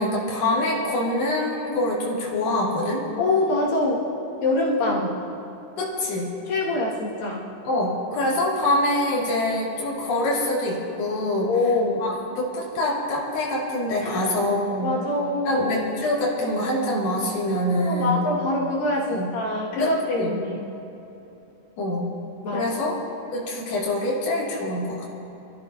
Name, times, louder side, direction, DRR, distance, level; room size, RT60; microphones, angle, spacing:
voice 1, 0.0-3.0 5.8-6.3 7.6-11.5 12.0-14.9 15.5-18.3 19.1-19.3 19.8-19.9 20.2-20.4 21.8-22.1 22.5-23.0 23.3-25.1, left 1 dB, 55° left, -6 dB, 3.6 m, -25 dB
voice 2, 3.2-4.0 4.4-5.1 6.5-7.4 11.5-12.1 14.0-14.4 14.8-15.9 17.8-20.6 22.4-22.9, left 2 dB, 75° left, -6 dB, 3.9 m, -24 dB
27.0 x 13.5 x 2.8 m, 2.9 s
omnidirectional pair, 3.9 m